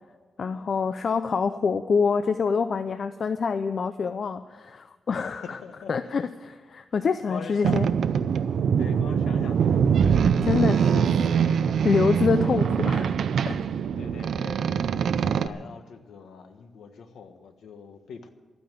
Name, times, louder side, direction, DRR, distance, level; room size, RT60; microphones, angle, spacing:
voice 1, 0.4-5.6 5.9-7.9 10.5-11.1 11.4-13.1 13.5-13.7, left 5 dB, 45° left, 10 dB, 0.5 m, -26 dB
voice 2, 5.4-6.0 7.3-7.8 8.8-10.3 12.4-12.6 14.0-18.3, left 6 dB, 90° left, 7 dB, 1.4 m, -42 dB
Boat Water vehicle, 7.6-15.5, right 7 dB, 70° right, 0.5 m, -23 dB
13.0 x 9.4 x 9.0 m, 1.4 s
wide cardioid pair, 150°, 0 cm